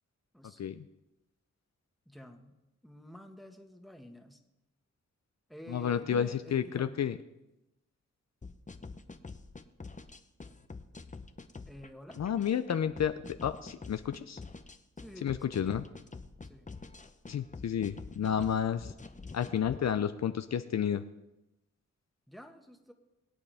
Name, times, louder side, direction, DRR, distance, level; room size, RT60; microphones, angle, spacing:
voice 1, 2.0-2.5 2.8-4.4 5.5-7.0 11.6-12.2 15.0-15.6 16.4-16.7 22.3-22.9, equal, ahead, 4 dB, 1.7 m, -50 dB
voice 2, 5.7-7.2 12.2-14.4 15.2-15.8 17.3-18.9 19.3-21.0, left 8 dB, 60° left, 11 dB, 0.6 m, -31 dB
sound 1, 8.4-19.8, left 3 dB, 25° left, 0.8 m, -47 dB
22.5 x 8.5 x 3.5 m, 0.94 s
cardioid pair, 60°, 30 cm